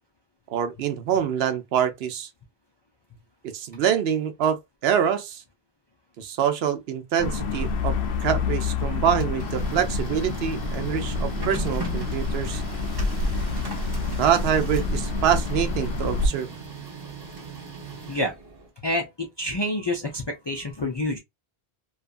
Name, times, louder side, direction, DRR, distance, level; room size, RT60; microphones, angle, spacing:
voice 1, 0.5-2.3 3.5-5.4 6.2-8.0 8.2-12.6 14.2-16.5, right 9 dB, 80° right, 0.8 m, -25 dB
sound 1, 7.2-16.3, left 4 dB, 85° left, 0.9 m, -27 dB
Printer, 8.9-18.7, right 3 dB, 25° right, 0.7 m, -38 dB
voice 2, 18.8-21.2, left 1 dB, 45° left, 0.3 m, -28 dB
2.7 x 2.3 x 2.4 m
omnidirectional pair, 1.0 m